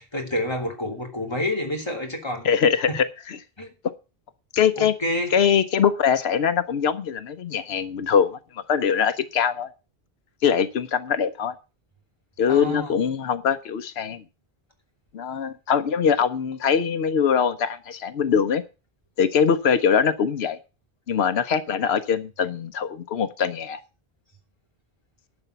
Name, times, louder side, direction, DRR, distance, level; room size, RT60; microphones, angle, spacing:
voice 1, 0.0-2.5 2.9-3.0 3.6-3.7 4.8-5.3 12.5-12.9, left 1 dB, 25° left, 1 dB, 3.0 m, -28 dB
voice 2, 2.4-3.4 4.5-5.0 5.3-9.7 10.4-11.5 12.4-14.2 15.1-18.6 19.2-20.6 21.1-23.8, left 7 dB, 90° left, 12 dB, 1.0 m, -22 dB
11.5 x 7.0 x 6.7 m, 0.32 s
omnidirectional pair, 1.0 m